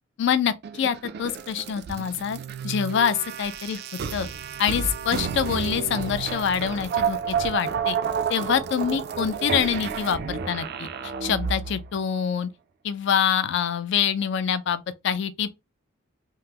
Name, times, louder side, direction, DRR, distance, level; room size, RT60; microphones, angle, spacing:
voice 1, 0.2-2.4 2.6-3.8 4.1-4.3 4.6-8.0 8.3-10.9 11.2-12.5 12.8-15.5, left 8 dB, 55° left, 0.3 m, -25 dB
sound 1, 0.6-11.9, right 6 dB, 50° right, 0.3 m, -30 dB
3.6 x 2.0 x 2.8 m
head